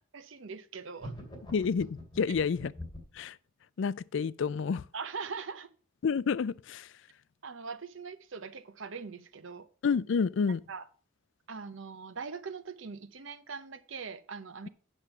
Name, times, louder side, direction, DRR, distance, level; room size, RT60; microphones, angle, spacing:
voice 1, 0.1-1.1 4.9-5.7 7.4-9.7 10.7-10.8 11.5-14.7, right 5 dB, 70° right, 0.8 m, -41 dB
sound 1, 1.0-3.2, equal, 20° left, 2.5 m, -44 dB
voice 2, 1.5-2.7 3.1-3.4 3.8-4.9 6.0-6.9 9.8-10.6, left 5 dB, 65° left, 0.4 m, -29 dB
8.8 x 6.1 x 5.7 m
head